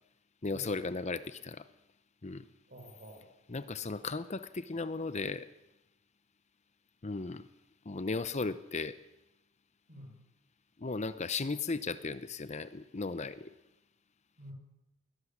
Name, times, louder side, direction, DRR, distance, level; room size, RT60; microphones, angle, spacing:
voice 1, 0.4-1.7 2.2-2.5 3.5-5.5 7.0-7.5 7.8-9.0 10.8-13.5, left 3 dB, 30° left, 13 dB, 0.7 m, -36 dB
voice 2, 2.7-3.3 9.9-10.2 14.4-14.5, equal, 40° right, 2 dB, 6.7 m, -49 dB
21.0 x 20.0 x 7.3 m, 0.90 s
head